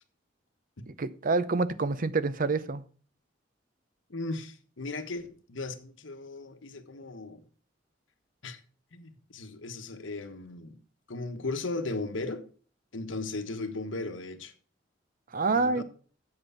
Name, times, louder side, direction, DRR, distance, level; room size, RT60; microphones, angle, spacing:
voice 1, 1.0-2.8 15.3-15.8, right 3 dB, 45° right, 0.6 m, -27 dB
voice 2, 4.1-7.4 8.4-8.6 8.9-10.8 11.1-12.4 12.9-14.5 15.5-15.8, left 2 dB, 85° left, 1.2 m, -37 dB
7.9 x 7.7 x 5.6 m
head